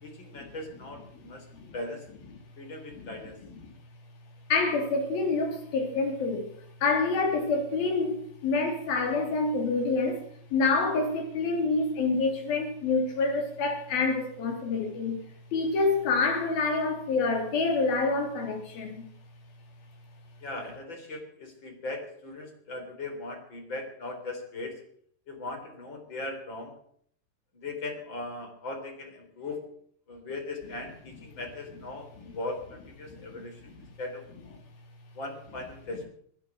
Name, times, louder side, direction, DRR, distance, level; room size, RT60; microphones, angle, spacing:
voice 1, 0.0-1.5 1.7-2.1 2.6-3.4 20.4-24.8 25.3-26.8 27.5-29.6 30.1-33.6 34.0-34.6 35.2-36.1, left 2 dB, 30° left, 3.9 m, -39 dB
voice 2, 1.2-1.7 3.0-3.1 3.6-3.7 4.5-6.5 6.8-15.2 15.5-19.1 33.1-33.9, left 3 dB, 60° left, 5.1 m, -27 dB
24.5 x 9.6 x 6.1 m
omnidirectional pair, 4.8 m